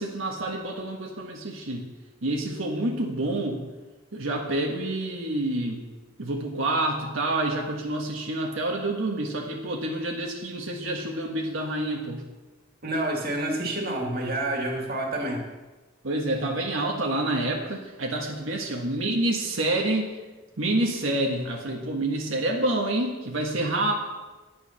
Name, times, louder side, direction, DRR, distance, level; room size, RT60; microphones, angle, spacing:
voice 1, 0.0-1.9 2.2-3.6 4.1-5.8 6.2-12.2 16.0-20.1 20.6-23.9, right 2 dB, 90° right, 0 dB, 1.5 m, -28 dB
voice 2, 12.8-15.5, right 1 dB, 50° right, 1 dB, 2.2 m, -28 dB
10.5 x 9.4 x 5.8 m, 1.2 s
head